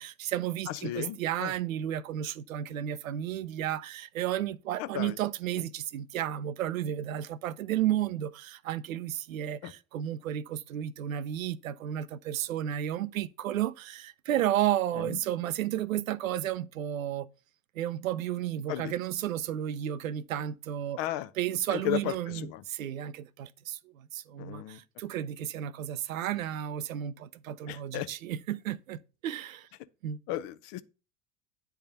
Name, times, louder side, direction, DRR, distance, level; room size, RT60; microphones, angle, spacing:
voice 1, 0.0-17.3 17.8-21.0 21.4-29.7 30.0-30.2, right 11 dB, 75° right, 0.6 m, -32 dB
voice 2, 0.7-1.5 4.8-5.2 5.6-5.7 9.6-9.7 14.9-15.2 18.7-18.9 21.0-21.3 21.7-22.6 24.4-24.8 27.7-28.1 30.3-30.8, left 14 dB, 45° left, 0.6 m, -35 dB
9.2 x 3.5 x 6.7 m
figure-of-eight pair, 80°, 41 cm